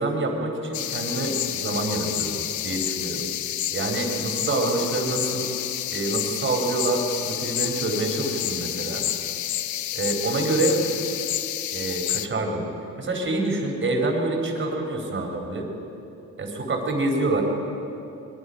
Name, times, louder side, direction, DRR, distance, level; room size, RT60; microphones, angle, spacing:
voice 1, 0.0-3.2 3.7-5.5 5.9-9.0 9.9-10.8 11.7-12.6 13.0-15.7 16.4-17.4, right 2 dB, 40° right, 2 dB, 4.6 m, -26 dB
sound 1, 0.7-12.3, left 12 dB, 75° left, 0.9 m, -29 dB
25.0 x 22.0 x 5.6 m, 2.8 s
cardioid pair, 90°, 30 cm